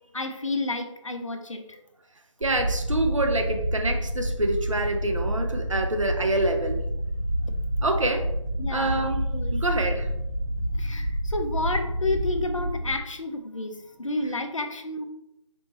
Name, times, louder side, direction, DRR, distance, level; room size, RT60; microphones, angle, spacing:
voice 1, 0.1-1.8 8.6-9.6 10.7-15.0, left 2 dB, 80° left, 6 dB, 0.7 m, -31 dB
sound 1, 2.4-12.9, equal, 20° right, 0.9 m, -28 dB
voice 2, 2.4-6.8 7.8-8.3 8.7-9.3 9.5-10.1, right 2 dB, 75° right, 5 dB, 0.7 m, -26 dB
4.4 x 2.8 x 4.0 m, 0.88 s
figure-of-eight pair, 155°, 16 cm